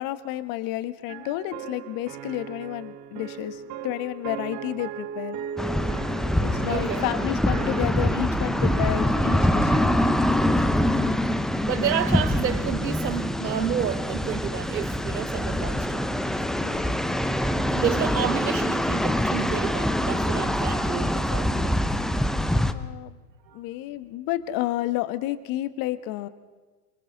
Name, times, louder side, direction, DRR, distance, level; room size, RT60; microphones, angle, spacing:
voice 1, 0.0-5.4 6.4-9.7 16.6-17.0 22.7-23.2 23.5-26.3, left 15 dB, 40° left, 1.4 m, -31 dB
sound 1, 1.1-10.6, right 8 dB, 35° right, 1.2 m, -38 dB
sound 2, 5.6-22.7, left 1 dB, ahead, 0.8 m, -24 dB
voice 2, 6.7-7.0 10.6-10.8 11.7-16.0 17.7-21.8 23.5-23.6, right 9 dB, 85° right, 1.0 m, -30 dB
27.5 x 24.5 x 4.0 m
hypercardioid pair, 95°, 50 cm